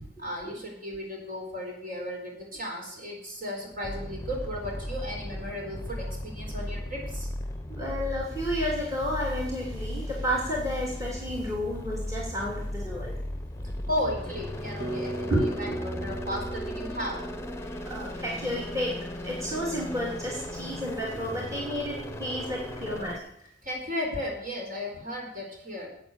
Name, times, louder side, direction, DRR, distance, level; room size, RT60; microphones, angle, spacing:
voice 1, 0.2-7.3 13.9-17.2 23.6-25.9, left 1 dB, 50° right, 0 dB, 4.3 m, -35 dB
sound 1, 3.8-23.2, left 1 dB, 15° left, 1.0 m, -36 dB
voice 2, 7.8-13.1 15.3-15.8 17.8-23.2, equal, 20° right, -4 dB, 2.9 m, -31 dB
Bass guitar, 14.8-18.9, right 2 dB, 75° right, 2.0 m, -38 dB
11.5 x 8.6 x 7.2 m, 0.74 s
head